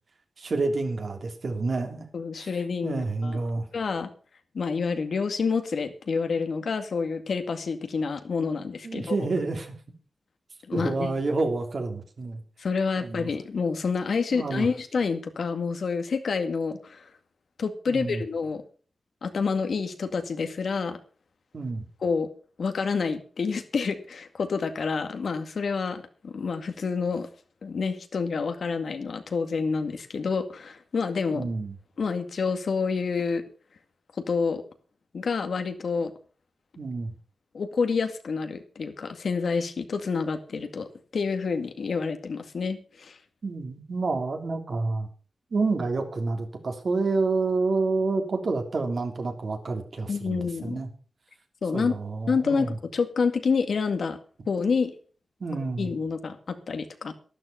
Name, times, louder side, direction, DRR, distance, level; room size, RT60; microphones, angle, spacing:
voice 1, 0.4-2.1 2.3-2.5 2.8-3.6 8.8-9.7 10.7-12.4 13.0-13.3 14.3-14.7 17.9-18.2 21.5-21.8 31.3-31.7 36.8-37.1 43.4-45.1 45.5-50.9 51.7-52.7 55.4-55.9, right 3 dB, 55° right, 4 dB, 3.2 m, -28 dB
voice 2, 2.1-3.4 3.7-4.1 4.5-9.2 10.7-11.1 12.6-17.1 17.6-18.6 19.2-21.0 22.0-22.3 22.6-27.3 27.6-31.5 32.0-33.4 34.3-34.6 35.1-36.1 37.5-40.9 41.1-43.2 50.1-50.8 51.6-52.0 52.3-54.2 54.5-54.9 55.8-57.1, left 5 dB, 70° left, 7 dB, 2.0 m, -28 dB
12.5 x 12.5 x 5.7 m, 0.40 s
wide cardioid pair, 105°, 0 cm